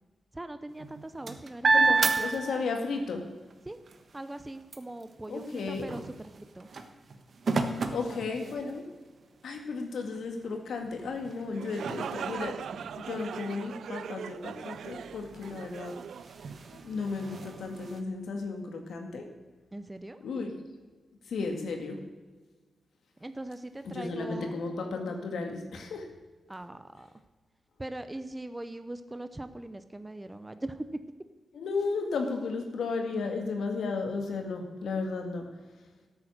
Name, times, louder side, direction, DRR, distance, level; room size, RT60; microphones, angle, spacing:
voice 1, 0.3-1.7 2.0-2.4 3.7-3.8 4.1-6.7 7.8-8.6 19.7-20.2 23.2-24.5 26.5-27.1 27.8-30.9, right 1 dB, 15° right, 10 dB, 0.6 m, -41 dB
sound 1, 0.7-3.1 3.5-8.9 9.6-9.7 10.0-18.0, right 4 dB, 50° right, 1.2 m, -33 dB
voice 2, 1.7-3.2 5.3-6.0 7.9-8.9 9.4-12.6 13.0-15.9 16.8-19.3 20.2-20.5 21.2-22.0 23.8-26.1 31.5-35.5, left 4 dB, 90° left, 4 dB, 2.1 m, -34 dB
sound 2, 11.4-17.1, right 8 dB, 90° right, 0.3 m, -40 dB
13.5 x 8.6 x 6.6 m, 1.3 s
wide cardioid pair, 145°, 0 cm